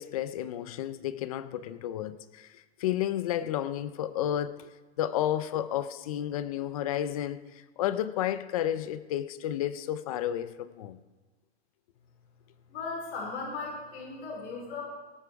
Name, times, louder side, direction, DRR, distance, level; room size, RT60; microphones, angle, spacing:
voice 1, 0.0-4.7 5.0-11.0, left 11 dB, 35° left, 0.5 m, -32 dB
voice 2, 12.7-14.8, left 4 dB, 80° left, 4.5 m, -37 dB
18.0 x 8.1 x 4.7 m
supercardioid pair, 165°, 34 cm